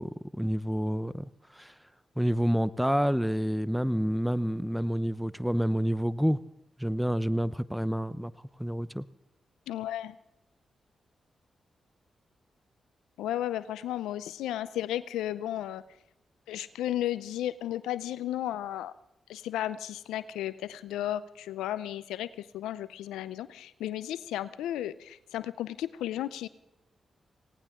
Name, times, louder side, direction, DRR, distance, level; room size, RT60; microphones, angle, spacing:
voice 1, 0.0-1.7 2.2-6.4 6.8-8.3 8.6-9.0, equal, 5° right, 17 dB, 0.7 m, -28 dB
voice 2, 9.7-10.2 13.2-15.8 16.5-18.9 19.3-26.5, left 12 dB, 90° left, 15 dB, 0.5 m, -34 dB
19.0 x 18.0 x 3.7 m, 0.87 s
supercardioid pair, 45°, 0 cm